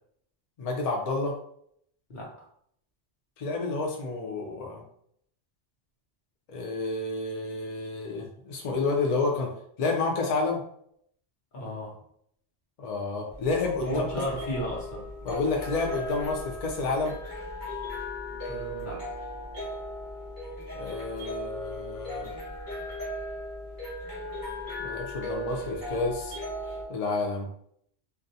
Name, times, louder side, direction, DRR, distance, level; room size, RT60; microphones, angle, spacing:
voice 1, 0.6-1.3 3.4-4.8 6.5-9.5 9.8-10.6 12.8-14.1 15.2-17.2 20.7-22.3 24.8-26.4 26.9-27.5, left 3 dB, 65° left, 0 dB, 0.4 m, -29 dB
voice 2, 11.5-12.0 13.8-15.0 18.5-19.0, equal, 50° left, -3 dB, 0.8 m, -34 dB
sound 1, 13.3-26.9, equal, 20° left, 0.9 m, -37 dB
2.3 x 2.0 x 2.6 m, 0.67 s
omnidirectional pair, 1.2 m